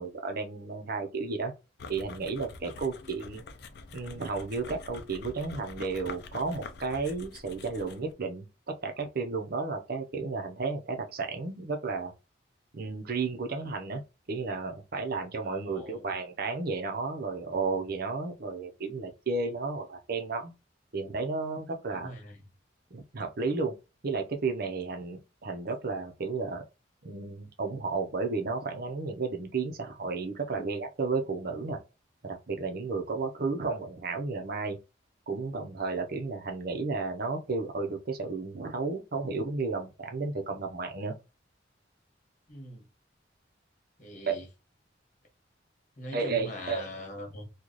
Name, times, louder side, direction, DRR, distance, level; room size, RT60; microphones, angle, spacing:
voice 1, 0.0-1.5 1.9-3.4 3.9-12.1 12.7-14.0 14.3-20.5 20.9-22.1 22.9-23.7 24.0-26.6 27.0-31.8 32.2-34.8 35.3-41.1 44.3-44.4 46.1-46.9, right 4 dB, 55° right, 0.7 m, -33 dB
sound 1, 1.8-8.1, left 3 dB, 60° left, 0.5 m, -45 dB
voice 2, 15.6-16.1 21.9-22.4 42.5-42.8 44.0-44.5 46.0-47.5, left 1 dB, 45° left, 1.3 m, -42 dB
3.1 x 2.3 x 3.8 m
head